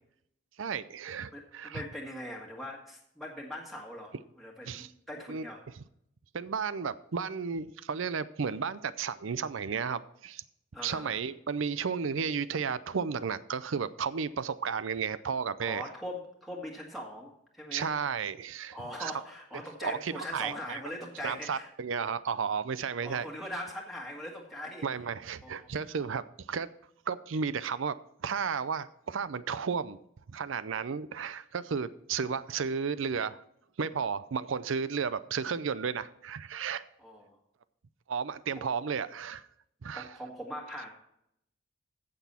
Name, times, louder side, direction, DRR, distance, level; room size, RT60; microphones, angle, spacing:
voice 1, 0.6-1.8 4.7-4.9 5.3-5.4 6.3-10.4 10.8-15.8 17.7-19.1 19.8-20.8 21.2-23.3 24.8-26.7 27.1-27.9 28.2-30.0 30.3-33.4 33.8-36.8 38.1-39.5 39.8-40.1, right 6 dB, 70° right, 15 dB, 0.5 m, -33 dB
voice 2, 1.3-5.6 10.7-11.2 15.6-17.9 18.7-21.7 23.0-24.8 25.4-25.5 37.0-37.4 38.5-38.7 39.9-40.9, left 1 dB, ahead, -2 dB, 1.6 m, -41 dB
15.0 x 6.1 x 4.3 m, 0.75 s
head